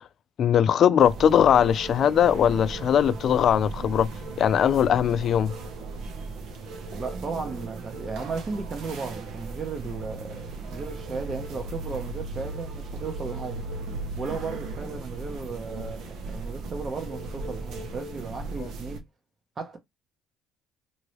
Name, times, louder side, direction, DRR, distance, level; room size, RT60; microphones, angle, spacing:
voice 1, 0.4-4.1 4.4-5.5, left 9 dB, 50° left, 0.4 m, -20 dB
sound 1, 1.0-19.0, right 3 dB, 65° right, 0.9 m, -37 dB
voice 2, 6.9-13.7 14.2-19.0 19.6-19.8, right 4 dB, 35° right, 0.9 m, -35 dB
sound 2, 9.8-14.8, equal, 20° left, 0.8 m, -40 dB
2.9 x 2.7 x 3.1 m
supercardioid pair, 95°, 0 cm